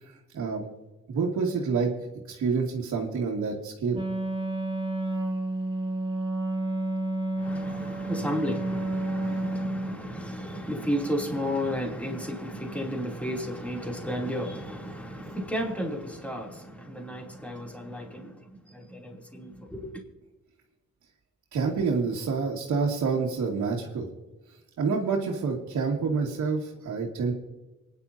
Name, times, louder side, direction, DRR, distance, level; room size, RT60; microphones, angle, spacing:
voice 1, 1.1-1.9 2.3-4.0 9.2-9.3 21.5-24.1 24.8-27.3, right 5 dB, 65° right, 2.3 m, -27 dB
Wind instrument woodwind instrument, 3.9-10.0, right 2 dB, 15° right, 2.2 m, -30 dB
voice 2, 7.4-19.9, equal, 5° left, 3.1 m, -33 dB
26.0 x 10.5 x 2.8 m
cardioid pair, 90°, 30 cm